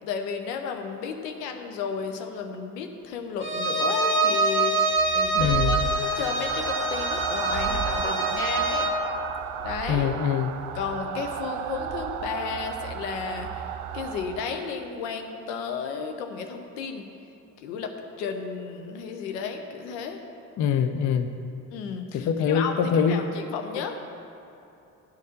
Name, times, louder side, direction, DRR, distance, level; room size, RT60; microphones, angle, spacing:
voice 1, 0.0-8.9 9.6-10.1 10.7-17.1 17.6-17.9 18.2-20.2 21.7-24.0, left 6 dB, 70° left, 5 dB, 0.8 m, -33 dB
Bowed string instrument, 3.4-9.0, right 2 dB, 25° right, 1.0 m, -25 dB
sound 1, 4.9-14.9, right 9 dB, 70° right, 0.5 m, -33 dB
voice 2, 5.3-5.8 9.9-10.5 20.6-21.3 22.1-23.3, left 7 dB, 35° left, 8 dB, 0.5 m, -24 dB
9.7 x 4.2 x 6.5 m, 2.8 s
figure-of-eight pair, 40°, 49 cm